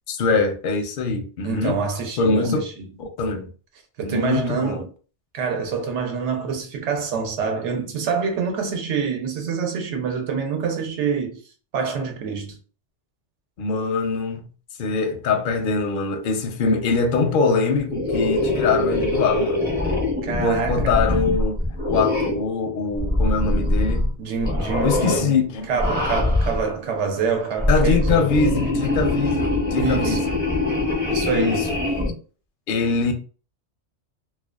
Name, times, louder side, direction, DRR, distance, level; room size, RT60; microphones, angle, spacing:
voice 1, 0.1-1.8 2.2-2.6 3.0-3.5 4.0-4.8 13.6-14.5 14.8-19.7 20.3-21.6 21.9-24.1 24.8-25.7 27.7-30.3 31.3-31.7 32.7-33.1, left 4 dB, 60° left, 0.6 m, -23 dB
voice 2, 1.4-2.9 4.0-4.9 5.3-11.4 11.7-12.6 20.2-21.0 24.2-25.3 25.7-28.3 29.7-30.2 31.1-31.7, right 5 dB, 80° right, 1.0 m, -26 dB
sound 1, 17.9-22.5 23.0-24.1 24.4-25.2 25.7-26.7 27.4-32.1, left 2 dB, 15° right, 0.4 m, -23 dB
2.4 x 2.2 x 2.2 m
omnidirectional pair, 1.2 m